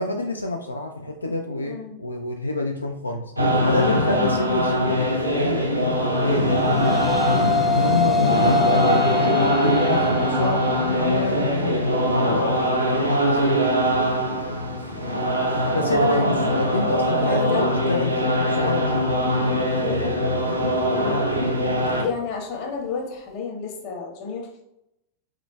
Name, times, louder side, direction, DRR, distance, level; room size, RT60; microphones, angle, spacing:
voice 1, 0.0-3.3 3.6-6.9 7.6-12.8 13.1-14.0 15.7-19.6, left 2 dB, 80° left, 2 dB, 0.3 m, -27 dB
voice 2, 1.6-1.9 9.2-9.5 16.4-16.6 17.2-17.7 22.0-24.6, left 5 dB, 45° left, 0 dB, 1.1 m, -31 dB
sound 1, 3.4-22.0, equal, 90° right, 0.7 m, -22 dB
sound 2, 6.3-15.5, left 4 dB, 10° left, 0.4 m, -27 dB
4.2 x 3.7 x 2.3 m, 0.82 s
figure-of-eight pair, 90°, 0 cm